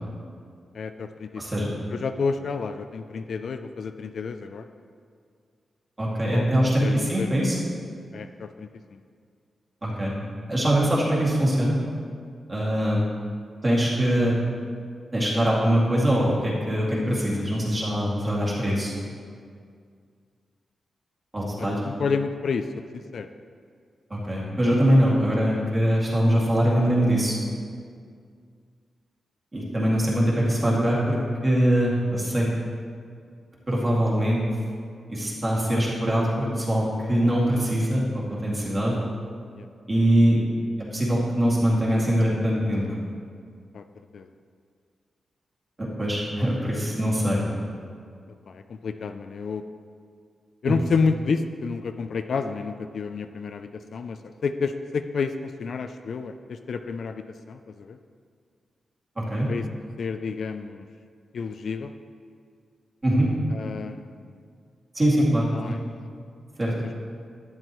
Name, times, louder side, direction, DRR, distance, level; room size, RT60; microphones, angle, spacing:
voice 1, 0.7-4.7 6.3-7.3 8.1-9.0 21.6-22.7 23.1-23.3 24.9-25.3 39.6-39.7 43.7-43.8 44.1-44.3 48.5-49.6 50.6-58.0 59.5-59.6 60.0-60.9 61.3-61.9 63.5-64.3 65.5-65.8, left 5 dB, 60° left, 8 dB, 0.4 m, -30 dB
voice 2, 1.4-1.7 6.0-7.6 9.8-10.1 10.5-11.8 12.5-13.0 13.6-14.4 15.1-18.9 21.3-21.8 24.1-27.4 29.5-32.5 33.7-34.4 35.1-39.0 39.9-40.4 40.9-42.8 45.8-47.4 59.2-59.5 63.0-63.3 64.9-65.7 66.6-66.7, equal, 25° right, -6 dB, 2.3 m, -22 dB
12.0 x 9.8 x 3.1 m, 2.1 s
wide cardioid pair, 155°, 0 cm